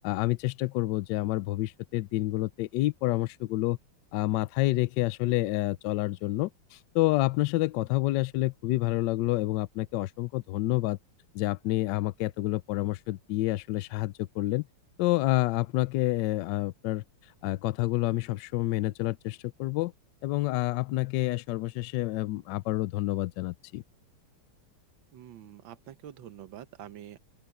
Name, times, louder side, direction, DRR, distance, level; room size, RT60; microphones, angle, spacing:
voice 1, 0.0-3.8 4.1-11.0 11.3-14.7 15.0-17.0 17.4-19.9 20.2-23.8, left 17 dB, 75° left, 1.0 m, -28 dB
voice 2, 25.1-27.2, right 11 dB, 65° right, 1.7 m, -46 dB
open air
omnidirectional pair, 2.4 m